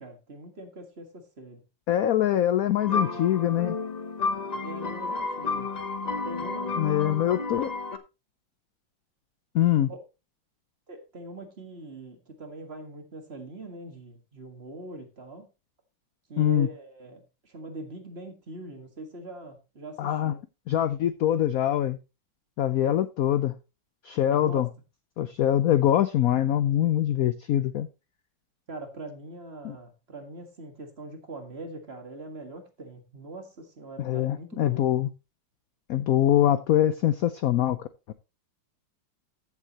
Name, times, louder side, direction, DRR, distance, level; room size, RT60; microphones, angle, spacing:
voice 1, 0.0-1.6 4.6-5.8 6.2-7.3 9.9-10.0 10.9-15.5 16.3-20.4 24.3-24.6 28.7-34.9, right 2 dB, 35° right, 1.8 m, -42 dB
voice 2, 1.9-3.8 6.8-7.7 9.5-9.9 16.4-16.7 20.0-20.3 20.7-22.0 22.6-23.5 24.0-24.7 25.2-27.9 29.6-29.8 34.0-35.1 35.9-38.1, left 11 dB, 70° left, 0.8 m, -24 dB
sound 1, 2.8-8.0, left 4 dB, 45° left, 0.5 m, -31 dB
14.0 x 7.4 x 2.9 m
omnidirectional pair, 2.1 m